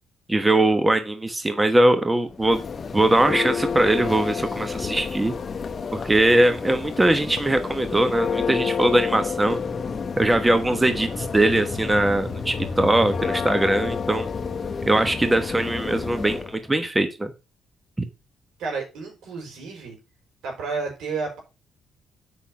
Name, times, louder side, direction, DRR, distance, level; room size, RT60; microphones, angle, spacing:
voice 1, 0.3-2.6 2.9-5.3 5.9-9.6 10.2-14.3 14.8-17.3, right 1 dB, 15° right, 9 dB, 1.1 m, -21 dB
Church bell, 2.3-16.6, left 5 dB, 40° left, 1.1 m, -30 dB
voice 2, 18.6-20.0 20.4-21.4, right 4 dB, 85° right, 2 dB, 5.5 m, -31 dB
8.3 x 5.9 x 5.7 m, 0.29 s
cardioid pair, 90°, 0 cm